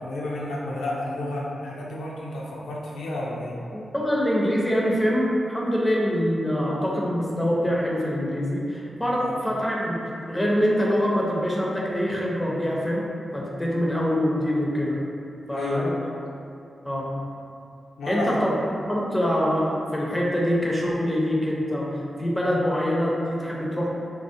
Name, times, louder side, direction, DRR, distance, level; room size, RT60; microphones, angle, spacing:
voice 1, 0.0-3.6 9.2-9.4 15.5-16.1 18.0-18.4, left 1 dB, 90° left, -4 dB, 0.3 m, -31 dB
voice 2, 3.7-10.0 10.3-13.0 13.3-15.0 15.5-15.9 16.8-17.2 18.1-18.5 18.9-23.9, equal, 10° left, -4 dB, 0.5 m, -24 dB
2.4 x 2.0 x 2.6 m, 2.5 s
cardioid pair, 55°, 0 cm